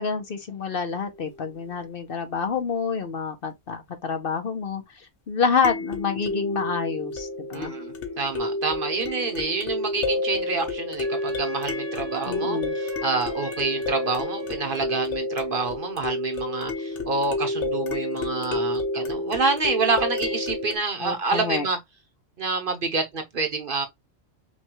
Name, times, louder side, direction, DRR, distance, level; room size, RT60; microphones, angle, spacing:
voice 1, 0.0-4.8 5.3-7.7 12.3-12.7 21.0-21.7, left 5 dB, 55° left, 0.8 m, -27 dB
sound 1, 0.9-1.0 5.6-20.8, left 2 dB, 70° left, 1.1 m, -30 dB
voice 2, 7.5-21.8 22.4-23.9, right 4 dB, 50° right, 0.9 m, -28 dB
Wind instrument woodwind instrument, 11.0-15.1, right 2 dB, 20° left, 1.2 m, -41 dB
5.5 x 2.2 x 2.9 m
omnidirectional pair, 1.3 m